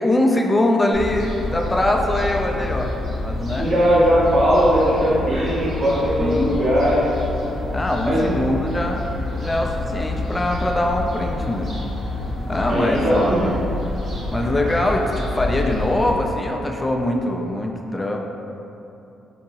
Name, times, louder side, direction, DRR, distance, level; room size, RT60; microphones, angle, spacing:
voice 1, 0.0-2.9 3.2-3.7 6.2-6.6 7.7-9.1 9.4-11.7 12.5-13.6 14.3-18.2, left 1 dB, 15° left, 1 dB, 0.3 m, -22 dB
Fowl, 0.9-16.1, left 2 dB, 60° right, 0.9 m, -28 dB
voice 2, 3.6-7.1 8.0-8.4 12.7-13.5, equal, 30° right, -8 dB, 0.7 m, -19 dB
3.4 x 2.8 x 2.8 m, 2.8 s
cardioid pair, 90°, 0 cm